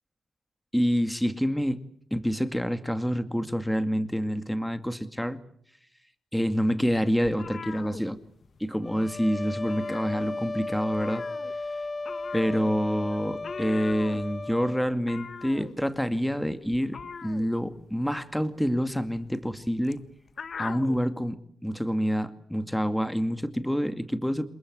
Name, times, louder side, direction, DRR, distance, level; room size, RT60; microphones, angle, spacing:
voice 1, 0.7-1.8 2.1-5.4 6.3-8.2 8.6-11.2 12.3-17.0 17.2-20.0 20.6-24.5, equal, ahead, 10 dB, 2.2 m, -27 dB
sound 1, 7.2-8.7 9.0-9.2 9.5-10.6 10.9-21.0, left 5 dB, 60° left, 1.6 m, -42 dB
sound 2, 8.8-14.9, left 3 dB, 35° left, 1.6 m, -35 dB
28.5 x 23.0 x 8.1 m, 0.63 s
cardioid pair, 80°, 0 cm